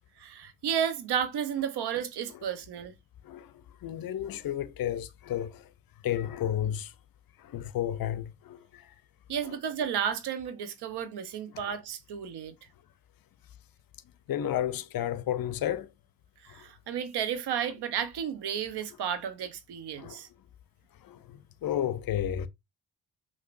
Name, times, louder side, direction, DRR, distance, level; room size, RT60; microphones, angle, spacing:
voice 1, 0.2-2.9 9.3-12.5 16.4-20.3, right 8 dB, 75° right, 0.9 m, -32 dB
voice 2, 3.2-5.7 6.0-6.9 7.4-8.9 9.4-9.6 14.3-15.9 16.5-16.7 20.0-20.2 21.0-22.5, left 11 dB, 60° left, 0.6 m, -32 dB
6.0 x 2.8 x 2.5 m
cardioid pair, 70°, 40 cm